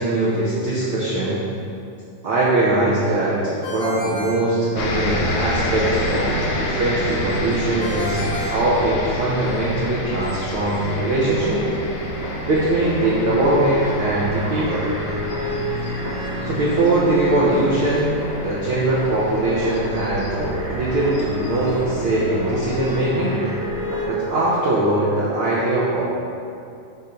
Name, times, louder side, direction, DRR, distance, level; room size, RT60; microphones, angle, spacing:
voice 1, 0.0-1.5 2.2-11.6 12.5-14.9 16.4-18.2 18.4-23.4 24.0-26.0, right 2 dB, 80° right, -7 dB, 1.2 m, -21 dB
Ringtone, 3.6-5.3 7.8-9.5, left 2 dB, 20° left, 0.9 m, -31 dB
sound 1, 4.7-23.1, left 1 dB, 75° left, 1.3 m, -30 dB
sound 2, 9.0-24.1, equal, 50° right, 1.7 m, -30 dB
10.5 x 3.8 x 4.4 m, 2.6 s
omnidirectional pair, 3.8 m